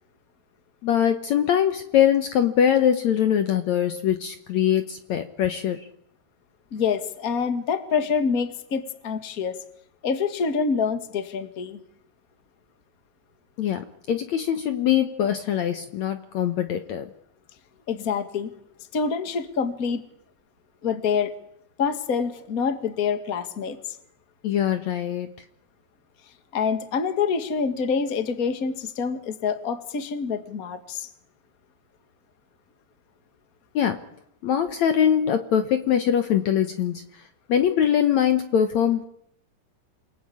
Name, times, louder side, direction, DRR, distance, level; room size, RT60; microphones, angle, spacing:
voice 1, 0.8-5.8 13.6-17.1 24.4-25.3 33.8-34.0 34.4-37.1 37.5-39.1, left 9 dB, 70° left, 9 dB, 1.7 m, -22 dB
voice 2, 6.7-9.6 10.0-11.8 17.9-18.5 18.9-20.0 20.8-21.3 21.8-24.0 26.5-31.1, left 6 dB, 45° left, 10 dB, 1.1 m, -26 dB
27.5 x 19.0 x 8.6 m, 0.73 s
omnidirectional pair, 4.6 m